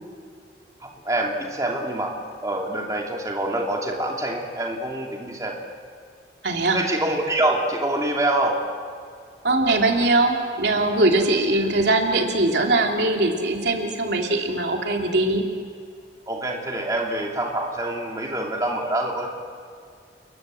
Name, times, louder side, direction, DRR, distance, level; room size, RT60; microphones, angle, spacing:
voice 1, 0.8-2.1 2.4-5.5 6.7-8.6 11.5-11.7 16.3-19.3, right 1 dB, 20° right, 0 dB, 2.8 m, -25 dB
voice 2, 6.4-6.8 9.4-15.4, right 2 dB, 80° right, 2 dB, 3.0 m, -21 dB
29.0 x 22.0 x 7.7 m, 2.3 s
head